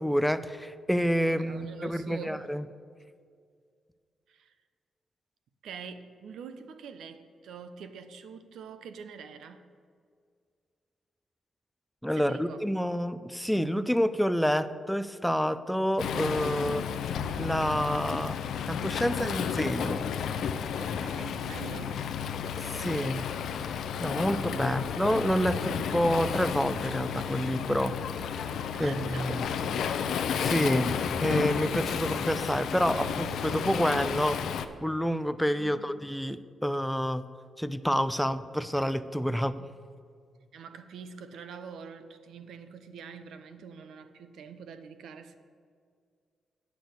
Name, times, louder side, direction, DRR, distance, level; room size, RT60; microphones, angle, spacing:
voice 1, 0.0-2.6 12.0-16.8 17.4-18.4 18.7-20.0 22.6-23.2 23.7-27.9 28.8-29.5 30.3-34.5 34.8-37.2 37.6-39.5, equal, ahead, 12 dB, 0.3 m, -28 dB
voice 2, 1.2-2.6 4.3-4.5 5.6-9.7 12.1-12.9 20.8-22.2 24.6-24.8 28.7-29.4 35.5-35.9 40.5-45.4, right 6 dB, 85° right, 10 dB, 0.7 m, -45 dB
Waves surf, 16.0-34.7, left 7 dB, 80° left, 0.6 m, -32 dB
8.6 x 6.1 x 8.1 m, 2.1 s
wide cardioid pair, 160°, 0 cm